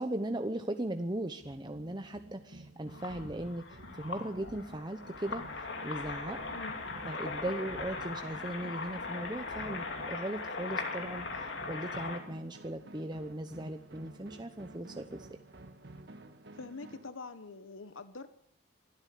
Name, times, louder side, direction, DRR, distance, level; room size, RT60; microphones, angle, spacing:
voice 1, 0.0-5.5 5.8-6.4 7.1-15.3, right 1 dB, 20° right, 6 dB, 1.0 m, -38 dB
sound 1, 1.4-17.1, right 1 dB, 60° right, 1.7 m, -52 dB
sound 2, 2.9-12.2, left 3 dB, 65° left, 2.8 m, -39 dB
voice 2, 16.5-18.3, left 3 dB, 90° left, 11 dB, 1.2 m, -45 dB
24.5 x 13.0 x 8.4 m, 0.71 s
head